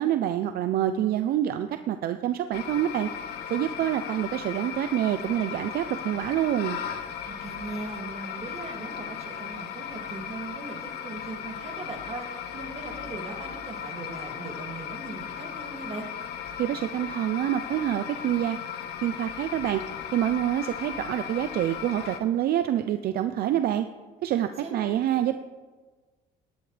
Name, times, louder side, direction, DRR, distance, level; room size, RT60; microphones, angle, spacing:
voice 1, 0.0-3.1 3.5-6.8 16.6-18.6 19.0-19.8 20.1-23.9 24.2-25.4, right 11 dB, 65° right, 9 dB, 0.6 m, -26 dB
sound 1, 2.5-22.2, left 8 dB, 70° left, 1.2 m, -37 dB
voice 2, 7.3-16.1 24.6-24.9, right 3 dB, 35° right, 1 dB, 2.4 m, -39 dB
17.0 x 11.5 x 3.4 m, 1.3 s
cardioid pair, 110°, 17 cm